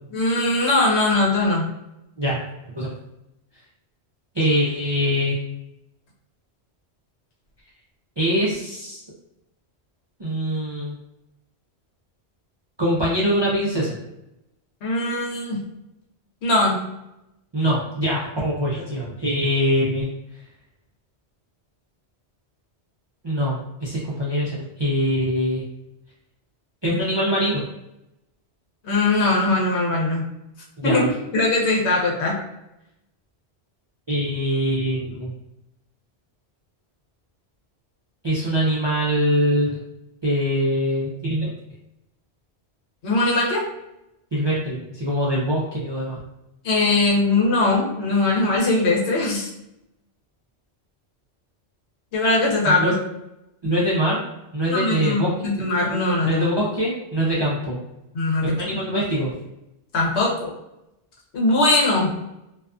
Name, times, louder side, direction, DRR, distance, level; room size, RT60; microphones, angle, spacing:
voice 1, 0.1-1.7 14.8-15.6 16.4-16.8 28.8-30.2 30.8-31.0 31.3-32.4 43.0-43.7 46.6-49.5 52.1-53.0 54.7-56.4 58.1-58.5 59.9-60.5 61.3-62.1, left 2 dB, 75° left, -3 dB, 1.0 m, -20 dB
voice 2, 4.3-5.3 8.2-9.0 10.2-11.0 12.8-14.0 17.5-20.1 23.2-25.6 26.8-27.6 30.8-31.1 34.1-35.3 38.2-39.8 40.2-41.5 44.3-46.2 52.6-52.9 53.6-54.2 54.5-55.3 55.9-57.8 58.4-59.3, equal, 45° right, -6 dB, 0.3 m, -23 dB
2.5 x 2.4 x 2.3 m, 0.89 s
omnidirectional pair, 1.1 m